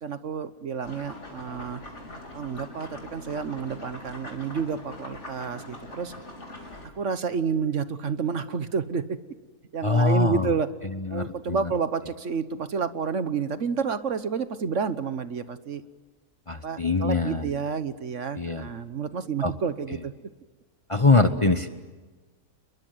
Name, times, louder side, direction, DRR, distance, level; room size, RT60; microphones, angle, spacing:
voice 1, 0.0-1.8 2.3-6.1 6.8-9.2 9.7-10.7 11.1-15.8 16.6-20.1, right 5 dB, 55° right, 12 dB, 1.4 m, -30 dB
sound 1, 0.8-6.9, left 1 dB, 50° left, 4.5 m, -42 dB
voice 2, 9.8-10.5 11.0-11.6 16.5-17.4 18.4-18.7 19.4-19.5 20.9-21.7, left 3 dB, 25° left, 9 dB, 1.0 m, -23 dB
29.0 x 22.0 x 7.9 m, 1.3 s
omnidirectional pair, 1.6 m